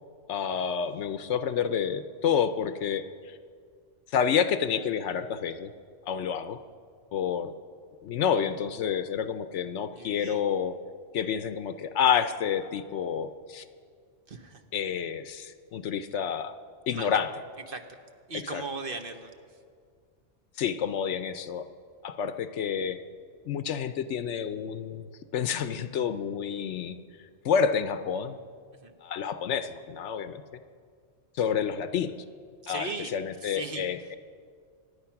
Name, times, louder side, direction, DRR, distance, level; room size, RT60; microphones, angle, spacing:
voice 1, 0.3-3.4 4.1-5.7 6.1-6.6 7.1-7.5 8.0-10.7 11.1-13.6 14.7-16.6 16.9-17.3 18.5-18.6 20.6-21.6 22.0-23.0 23.5-25.1 25.3-27.0 27.4-28.4 29.0-30.4 31.4-32.1 32.7-34.0, left 7 dB, 75° left, 11 dB, 1.0 m, -29 dB
voice 2, 9.9-10.4 14.3-14.6 16.9-17.1 17.7-18.0 18.3-19.6 28.7-29.0 32.6-33.1 33.4-34.2, right 3 dB, 50° right, 6 dB, 1.2 m, -39 dB
25.5 x 9.5 x 5.8 m, 2.1 s
omnidirectional pair, 1.2 m